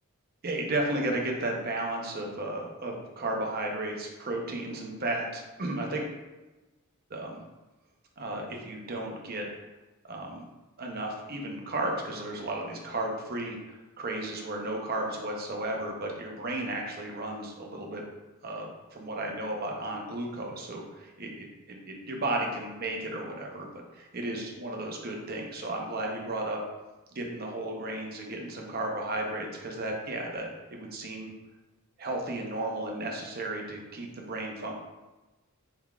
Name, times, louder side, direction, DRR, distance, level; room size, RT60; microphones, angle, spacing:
voice 1, 0.4-6.0 7.1-7.4 8.2-9.5 10.0-10.5 10.8-18.0 18.4-26.6 27.1-31.3 32.0-34.7, right 2 dB, 45° right, 1 dB, 0.7 m, -34 dB
4.5 x 3.8 x 2.3 m, 1.1 s
head